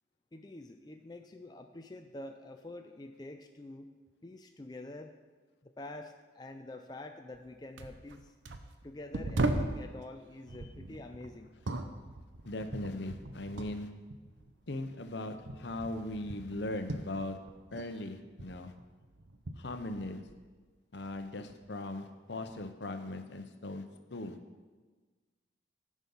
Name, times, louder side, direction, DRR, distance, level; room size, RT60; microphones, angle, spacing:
voice 1, 0.3-3.9 4.2-5.1 5.6-8.3 8.8-11.6, left 2 dB, 20° left, 5 dB, 0.4 m, -47 dB
sound 1, 7.3-7.5 7.8-9.8 10.5-13.8 14.1-17.9 18.2-20.5 21.0-21.7 22.5-22.6, right 2 dB, 85° right, 0.8 m, -39 dB
voice 2, 12.5-13.9 14.7-17.4 17.7-18.7 19.6-20.2 20.9-23.8 24.1-24.4, left 2 dB, 70° left, 8 dB, 0.8 m, -39 dB
13.0 x 6.3 x 5.5 m, 1.4 s
head